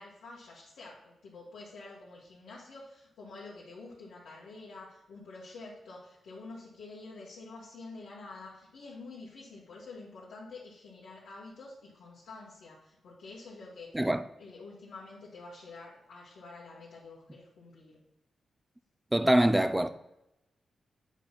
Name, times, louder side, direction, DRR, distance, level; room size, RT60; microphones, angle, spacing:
voice 1, 0.0-14.1 14.4-18.0, left 3 dB, 80° left, 1.7 m, -48 dB
voice 2, 19.1-19.9, right 1 dB, 15° right, 0.6 m, -24 dB
8.9 x 4.4 x 4.1 m
supercardioid pair, 45°, 0 cm